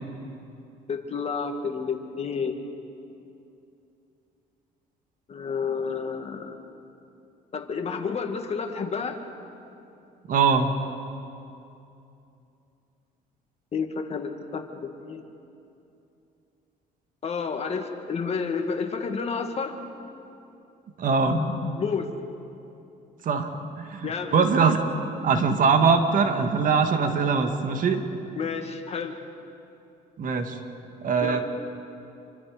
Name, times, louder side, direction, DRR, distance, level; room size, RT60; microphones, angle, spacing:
voice 1, 0.9-2.5 5.3-6.6 7.5-9.2 13.7-15.2 17.2-19.8 21.3-22.1 23.5-23.7 24.0-24.4 28.3-29.2 31.2-31.4, left 5 dB, 40° left, 4 dB, 2.1 m, -30 dB
voice 2, 10.3-10.7 21.0-21.4 23.2-23.5 23.8-24.8 25.2-28.0 30.2-30.6 31.0-31.4, right 5 dB, 55° right, 6 dB, 2.0 m, -22 dB
28.0 x 25.0 x 5.2 m, 2.7 s
cardioid pair, 110°, 17 cm